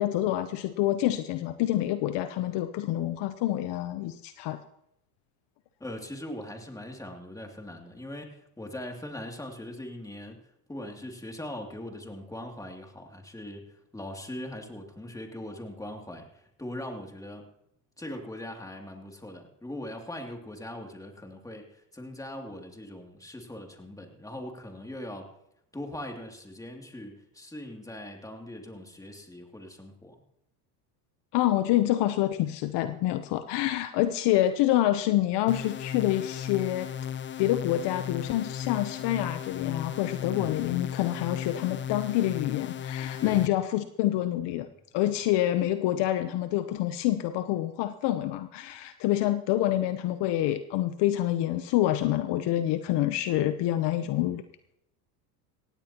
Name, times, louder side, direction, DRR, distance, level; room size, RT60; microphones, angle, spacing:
voice 1, 0.0-4.6 31.3-36.9 37.4-44.7 44.9-54.4, left 13 dB, 55° left, 10 dB, 0.9 m, -27 dB
voice 2, 5.8-10.4 10.7-13.6 13.9-17.5 18.0-25.3 25.7-30.2 40.3-40.6 43.2-43.5, left 1 dB, 5° left, 2 dB, 2.7 m, -40 dB
sound 1, 35.5-43.5, left 9 dB, 25° left, 0.6 m, -36 dB
17.5 x 16.5 x 3.0 m, 0.78 s
supercardioid pair, 100°, 50 cm